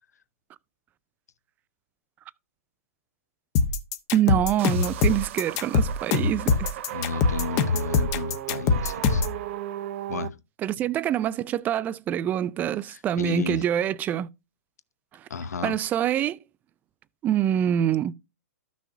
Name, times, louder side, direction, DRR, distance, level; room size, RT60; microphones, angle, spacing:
sound 1, 3.5-9.4, left 5 dB, 35° left, 1.0 m, -23 dB
voice 1, 4.1-6.7 10.6-14.3 15.6-16.4 17.2-18.1, right 10 dB, 20° right, 0.3 m, -25 dB
sound 2, 4.6-10.3, right 13 dB, 50° right, 0.7 m, -36 dB
voice 2, 6.9-9.2 10.1-10.3 12.8-13.6 15.3-15.8, left 6 dB, 85° left, 0.8 m, -33 dB
13.0 x 6.2 x 2.6 m
hypercardioid pair, 130°, 9 cm